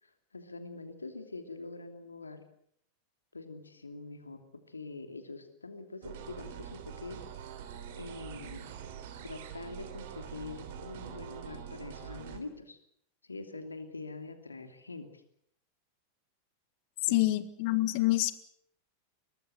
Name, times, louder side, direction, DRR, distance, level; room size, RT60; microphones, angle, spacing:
voice 1, 0.0-2.4 3.3-4.4 4.7-7.5 8.0-8.6 9.2-12.8 13.2-15.2 17.0-17.2, left 3 dB, 80° left, 8 dB, 2.9 m, -44 dB
sound 1, 6.0-12.4, right 9 dB, 55° right, 3.2 m, -44 dB
voice 2, 17.1-18.3, left 17 dB, 45° left, 15 dB, 1.4 m, -27 dB
23.0 x 19.0 x 7.9 m, 0.68 s
figure-of-eight pair, 90°, 0 cm